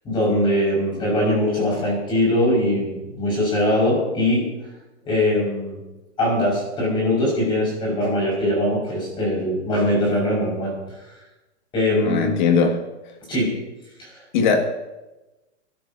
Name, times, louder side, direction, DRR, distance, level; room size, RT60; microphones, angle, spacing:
voice 1, 0.0-4.5 5.1-5.8 6.2-10.7 11.7-12.4 13.3-13.5 14.0-14.1, left 1 dB, 15° left, -4 dB, 5.5 m, -21 dB
voice 2, 12.1-12.8 14.3-14.6, left 5 dB, 40° left, 3 dB, 2.1 m, -19 dB
28.0 x 13.0 x 2.8 m, 1.1 s
hypercardioid pair, 175°, 35 cm